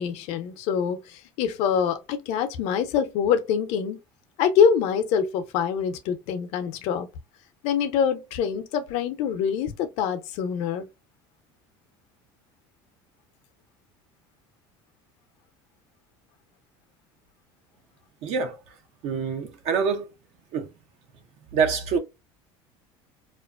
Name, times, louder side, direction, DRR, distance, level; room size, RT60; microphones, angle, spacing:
voice 1, 0.0-4.0 4.4-7.1 7.6-10.9, left 7 dB, 65° left, 0.6 m, -25 dB
voice 2, 18.2-18.6 19.0-20.1 20.5-20.7 21.5-22.0, right 6 dB, 60° right, 0.6 m, -25 dB
2.4 x 2.1 x 2.4 m
supercardioid pair, 90°, 12 cm